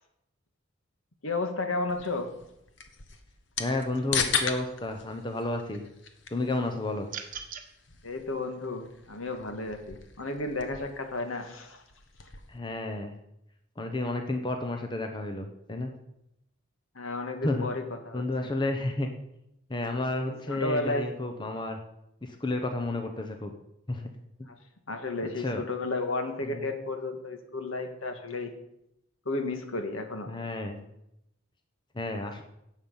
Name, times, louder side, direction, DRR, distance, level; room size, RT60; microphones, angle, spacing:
voice 1, 1.2-2.3 8.0-11.8 16.9-18.5 20.5-21.1 24.4-24.5 24.9-28.5 29.2-30.3, left 2 dB, 85° left, 6 dB, 1.7 m, -33 dB
sound 1, 1.9-12.6, left 6 dB, 60° left, 1.3 m, -38 dB
voice 2, 3.6-5.9 6.3-7.1 12.5-13.1 13.8-15.9 17.4-17.7 18.1-19.1 19.7-21.8 22.2-23.5 23.9-24.1 25.2-25.7 26.4-26.7 30.3-30.8 31.9-32.4, left 2 dB, 20° left, 4 dB, 0.9 m, -31 dB
sound 2, 7.1-7.7, right 7 dB, 40° right, 1.3 m, -38 dB
17.0 x 7.3 x 5.5 m, 0.83 s
head